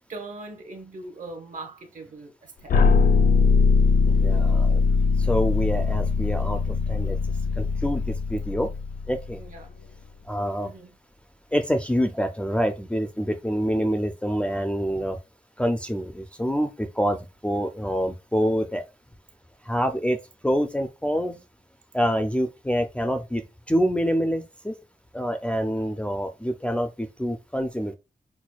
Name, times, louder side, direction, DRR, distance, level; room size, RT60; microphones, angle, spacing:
voice 1, 0.0-2.9 9.3-9.7 10.6-10.9, right 2 dB, 65° right, 0.9 m, -41 dB
sound 1, 2.7-9.6, left 4 dB, 75° left, 0.4 m, -21 dB
voice 2, 4.1-4.8 5.2-7.2 7.6-8.7 9.1-9.4 10.2-10.7 11.5-15.2 15.6-18.8 19.6-20.2 20.4-21.4 21.9-24.7 25.1-27.9, equal, 10° left, 0.3 m, -26 dB
6.0 x 2.2 x 2.3 m
wide cardioid pair, 170°, 15 cm